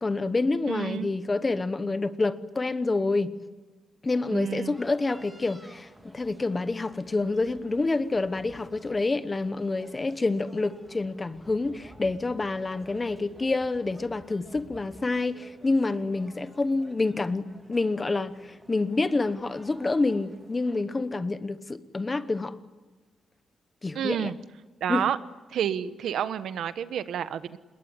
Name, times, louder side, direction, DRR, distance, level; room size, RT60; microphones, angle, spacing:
voice 1, 0.0-3.3 4.0-22.6 23.8-24.3 24.9-25.1, left 3 dB, 20° left, 1.0 m, -28 dB
voice 2, 0.7-1.1 4.3-4.7 23.9-24.4 24.8-25.2 25.5-27.6, right 9 dB, 75° right, 1.2 m, -29 dB
sound 1, 4.1-20.8, right 1 dB, 10° right, 2.4 m, -52 dB
27.0 x 21.5 x 9.9 m
wide cardioid pair, 175°, 0 cm